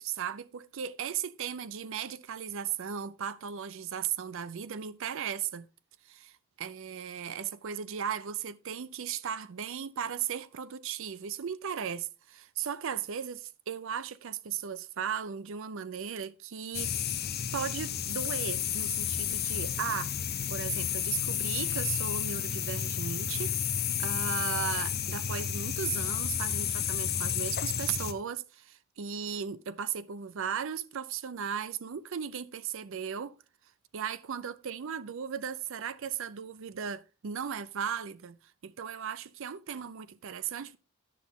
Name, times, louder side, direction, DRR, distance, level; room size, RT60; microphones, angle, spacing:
voice 1, 0.0-5.7 6.1-13.4 13.7-17.0 17.5-20.1 20.5-23.6 24.0-33.4 33.9-38.4 38.6-40.8, right 7 dB, 65° right, 0.5 m, -36 dB
sound 1, 16.7-28.1, left 9 dB, 50° left, 0.8 m, -31 dB
10.0 x 7.2 x 3.6 m
head